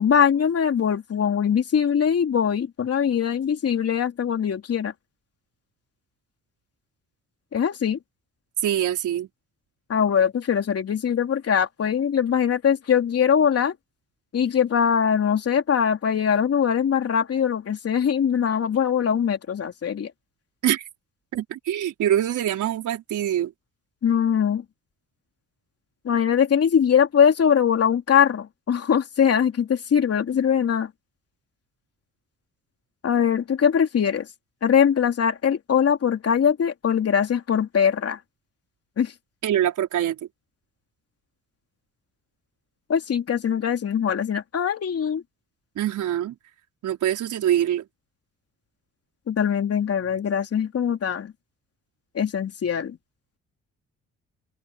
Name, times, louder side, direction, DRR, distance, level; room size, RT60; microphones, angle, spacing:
voice 1, 0.0-4.9 7.5-8.0 9.9-13.7 14.3-20.1 24.0-24.6 26.0-30.9 33.0-34.3 34.6-38.2 39.0-39.1 42.9-45.2 49.3-51.3 52.1-53.0, left 8 dB, 50° left, 3.4 m, -22 dB
voice 2, 8.6-9.3 20.6-20.9 21.3-23.5 39.4-40.2 45.7-46.3 46.8-47.8, right 11 dB, 75° right, 5.0 m, -24 dB
cardioid pair, 90°, 30 cm